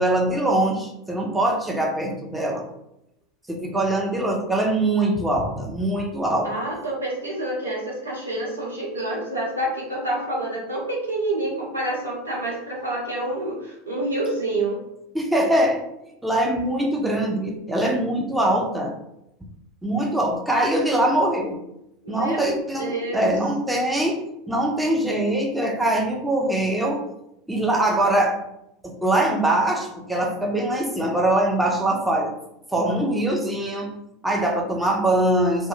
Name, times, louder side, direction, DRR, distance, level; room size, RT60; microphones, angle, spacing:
voice 1, 0.0-2.6 3.5-6.5 15.1-15.8 16.2-18.9 19.8-21.6 22.1-27.0 27.5-28.4 28.8-32.3 32.7-33.9 34.2-35.7, right 1 dB, 5° right, 0 dB, 0.5 m, -22 dB
voice 2, 6.4-14.8 22.0-23.3, right 1 dB, 90° right, -4 dB, 0.7 m, -28 dB
2.1 x 2.1 x 3.0 m, 0.82 s
figure-of-eight pair, 80°, 0 cm